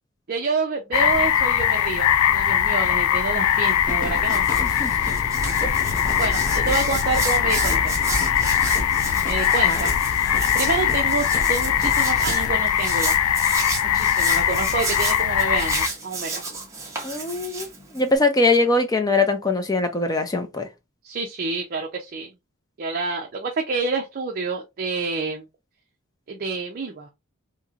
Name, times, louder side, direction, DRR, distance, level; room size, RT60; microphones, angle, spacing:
voice 1, 0.3-4.5 6.2-8.0 9.2-9.9 10.5-13.2 13.9-16.4 21.0-22.3 22.8-25.5 26.3-27.1, right 4 dB, 45° right, 0.5 m, -28 dB
sound 1, 0.9-15.9, left 10 dB, 80° left, 0.3 m, -21 dB
Hands, 3.5-18.2, right 3 dB, 15° right, 0.8 m, -33 dB
sound 2, 3.8-12.5, left 1 dB, 40° left, 0.8 m, -32 dB
voice 2, 4.6-4.9 9.6-9.8 17.0-17.7 17.9-20.7, left 2 dB, 20° left, 0.5 m, -22 dB
2.9 x 2.8 x 2.4 m
head